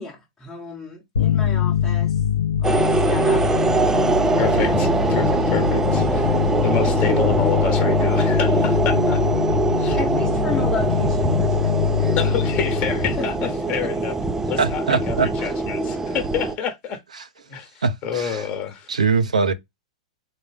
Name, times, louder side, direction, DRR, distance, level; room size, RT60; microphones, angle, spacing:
voice 1, 0.0-2.1 2.6-3.4 5.3-5.4 9.9-12.2 13.2-13.5 13.8-13.9, left 3 dB, 10° left, 1.0 m, -33 dB
sound 1, 1.1-14.3, left 9 dB, 85° left, 0.6 m, -23 dB
sound 2, 2.6-16.5, right 3 dB, 10° right, 0.4 m, -23 dB
voice 2, 4.3-9.2 9.8-10.0 12.2-14.1 14.5-17.0 17.5-18.9, left 7 dB, 35° left, 1.0 m, -28 dB
voice 3, 14.6-15.3 17.2-17.3 17.8-18.5 18.9-19.5, right 4 dB, 90° right, 0.6 m, -22 dB
3.8 x 2.2 x 3.3 m
hypercardioid pair, 115°, 4 cm